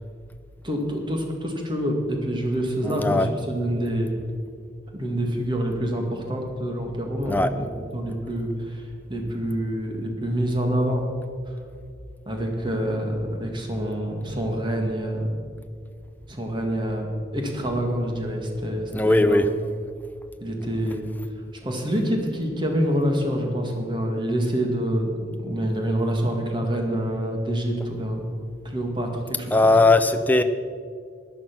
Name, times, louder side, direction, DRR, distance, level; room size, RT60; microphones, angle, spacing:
voice 1, 0.6-4.1 4.9-11.0 12.3-15.3 16.3-17.1 17.3-19.4 20.4-21.0 21.6-25.1 25.4-28.2 28.6-29.7, equal, 25° right, 2 dB, 1.9 m, -26 dB
voice 2, 2.8-3.3 7.3-7.5 18.9-19.5 29.5-30.4, left 2 dB, 10° left, 9 dB, 0.6 m, -18 dB
14.0 x 10.5 x 6.0 m, 2.2 s
head